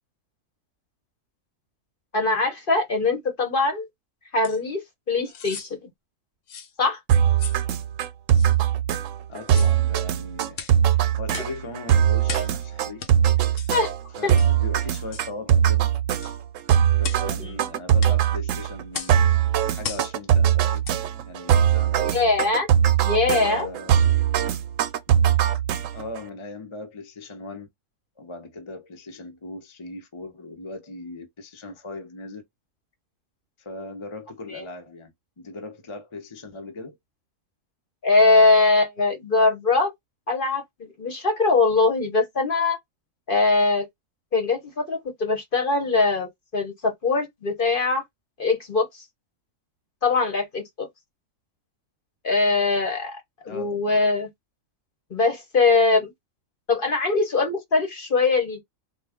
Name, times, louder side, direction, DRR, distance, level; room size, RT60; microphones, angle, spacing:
voice 1, 2.1-3.9 4.3-5.9 6.8-7.0 13.7-13.9 14.2-14.4 17.4-17.5 22.0-22.7 23.0-23.7 34.5-34.6 38.0-39.9 40.3-42.8 43.3-43.9 44.3-48.0 48.4-49.0 50.0-50.9 52.2-54.3 55.1-56.1 56.7-58.6, left 3 dB, 45° left, 1.1 m, -22 dB
sound 1, 4.4-4.6 5.3-5.7 6.5-6.7 7.4-7.6 8.3-8.5 9.4-9.8 10.5-10.8 11.3-11.6 12.2-12.6 13.0-13.1 13.6-13.7 14.4-14.6 15.1-15.3 16.2-16.4 17.0-17.3 18.0-18.2 18.9-19.2 19.8-20.1 20.8-21.0 21.5-21.6, left 6 dB, 70° left, 1.1 m, -36 dB
sound 2, 7.1-26.2, right 9 dB, 80° right, 1.0 m, -21 dB
voice 2, 9.3-13.6 14.1-15.9 16.9-19.4 19.7-20.8 21.3-22.2 23.4-24.0 25.9-27.7 28.2-32.4 33.6-35.1 35.4-37.0 53.5-54.0, left 2 dB, 25° left, 0.8 m, -39 dB
3.9 x 2.4 x 3.5 m
omnidirectional pair, 1.4 m